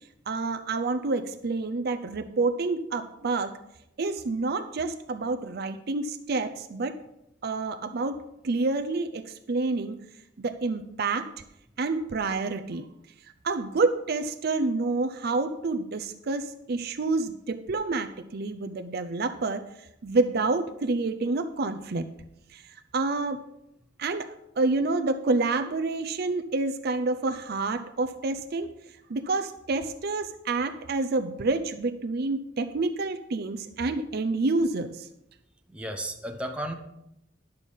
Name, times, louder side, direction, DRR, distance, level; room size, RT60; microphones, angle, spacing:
voice 1, 0.3-3.5 4.0-7.0 7.4-8.2 8.4-10.0 10.4-11.3 11.8-12.9 13.4-19.6 20.0-22.1 22.5-22.6 22.9-23.4 24.0-28.7 29.1-35.1, right 3 dB, 55° right, 9 dB, 0.5 m, -28 dB
voice 2, 35.7-36.7, right 1 dB, 5° right, 3 dB, 1.0 m, -33 dB
11.0 x 6.7 x 5.4 m, 0.84 s
head